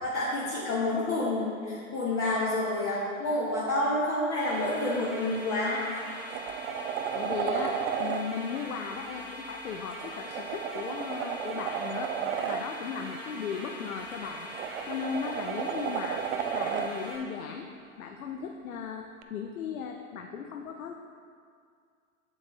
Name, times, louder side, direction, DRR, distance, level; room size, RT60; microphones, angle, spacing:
voice 1, 0.0-5.8, left 2 dB, 30° left, -6 dB, 1.3 m, -29 dB
sound 1, 4.4-17.2, right 1 dB, 5° right, 1.6 m, -42 dB
sound 2, 5.3-5.5 5.9-8.2 9.9-12.6 14.1-16.9 19.2-19.3, right 8 dB, 55° right, 0.6 m, -33 dB
voice 2, 7.1-12.2 12.5-14.5 14.9-16.2 16.5-17.7 18.0-20.9, left 6 dB, 75° left, 3 dB, 0.7 m, -37 dB
7.6 x 7.5 x 3.2 m, 2.2 s
hypercardioid pair, 100°, 42 cm